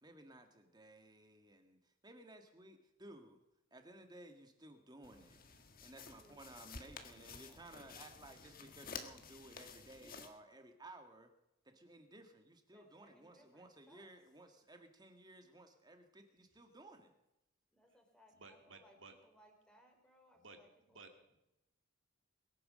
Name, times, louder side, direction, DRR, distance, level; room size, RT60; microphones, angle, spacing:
voice 1, 0.0-3.4 3.7-5.4 5.8-11.3 11.7-17.1, right 1 dB, 20° right, 6 dB, 1.9 m, -57 dB
sound 1, 5.0-10.3, left 5 dB, 45° left, 1.5 m, -52 dB
voice 2, 6.2-7.2 7.5-7.7 12.7-14.1 17.7-21.0, equal, 5° left, 2 dB, 3.5 m, -67 dB
voice 3, 18.3-19.1 20.4-21.4, right 3 dB, 65° right, 5 dB, 2.5 m, -58 dB
22.0 x 9.8 x 6.4 m, 0.88 s
head